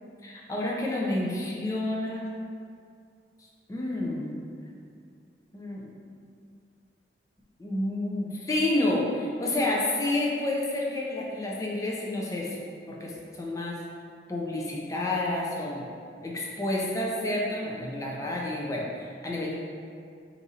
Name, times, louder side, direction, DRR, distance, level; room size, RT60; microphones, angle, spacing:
voice 1, 0.2-2.3 3.7-4.5 5.5-5.9 7.6-12.6 12.9-13.8 14.3-15.9 16.2-19.5, left 1 dB, 20° left, -3 dB, 0.4 m, -29 dB
3.0 x 2.7 x 3.7 m, 2.3 s
head